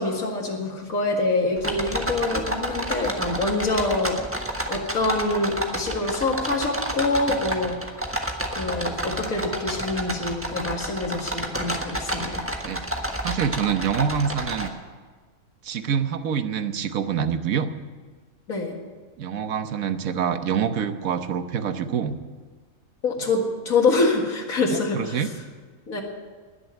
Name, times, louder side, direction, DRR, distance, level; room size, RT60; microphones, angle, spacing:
voice 1, 0.0-4.2 4.7-7.8 8.5-12.5 18.5-18.7 23.0-25.2 25.9-26.0, left 3 dB, 75° left, 0 dB, 2.4 m, -25 dB
sound 1, 1.6-14.7, right 1 dB, 10° right, 1.3 m, -30 dB
voice 2, 13.2-14.7 15.6-17.7 19.2-22.2 24.7-25.3, right 7 dB, 80° right, 10 dB, 1.3 m, -26 dB
20.0 x 7.0 x 9.1 m, 1.4 s
omnidirectional pair, 1.4 m